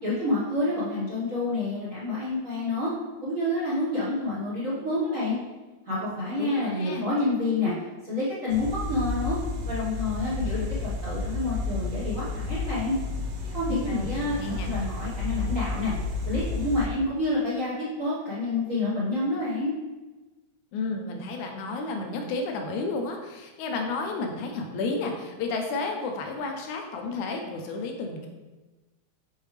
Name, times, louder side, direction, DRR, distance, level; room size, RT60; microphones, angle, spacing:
voice 1, 0.0-2.9 3.2-5.4 5.9-7.7 8.0-9.4 9.7-12.9 13.5-15.9 16.2-17.7 18.0-19.7, left 2 dB, 50° right, -9 dB, 1.0 m, -28 dB
voice 2, 6.4-7.1 13.7-14.1 14.3-14.7 20.7-28.3, left 3 dB, 85° left, 3 dB, 2.3 m, -31 dB
sound 1, 8.5-16.9, left 3 dB, 70° right, 1.7 m, -31 dB
6.9 x 5.5 x 3.2 m, 1.2 s
omnidirectional pair, 3.4 m